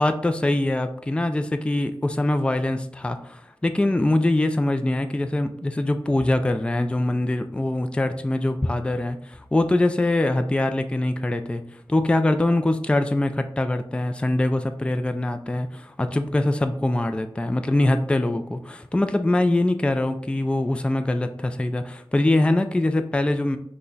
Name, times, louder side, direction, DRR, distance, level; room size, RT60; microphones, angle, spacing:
voice 1, 0.0-11.6 11.9-23.6, left 1 dB, 10° left, 8 dB, 0.3 m, -23 dB
5.7 x 2.1 x 3.9 m, 0.71 s
wide cardioid pair, 80°, 9 cm